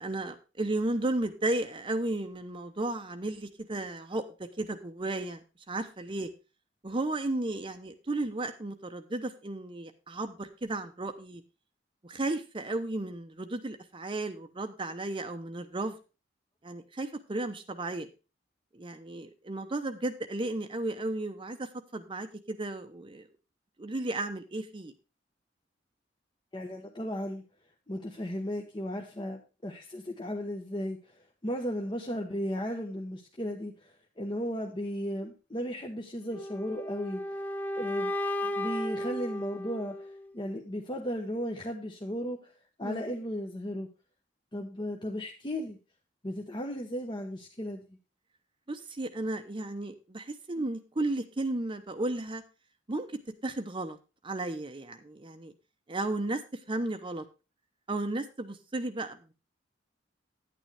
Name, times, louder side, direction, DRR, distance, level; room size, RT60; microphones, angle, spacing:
voice 1, 0.0-6.3 6.8-11.4 12.0-16.0 16.6-18.1 18.7-23.3 23.8-24.9 42.8-43.2 48.7-52.4 52.9-53.1 53.4-54.0 54.2-55.5 55.9-57.2 57.9-59.3, right 2 dB, 30° right, 7 dB, 0.8 m, -34 dB
voice 2, 26.5-27.4 27.9-31.0 31.4-33.7 34.2-37.2 37.8-38.1 38.4-42.5 42.8-43.9 44.5-45.8 46.2-47.8, equal, 25° left, 1 dB, 1.0 m, -35 dB
sound 1, 36.3-40.3, left 1 dB, 10° left, 0.6 m, -34 dB
10.5 x 8.9 x 3.4 m, 0.31 s
head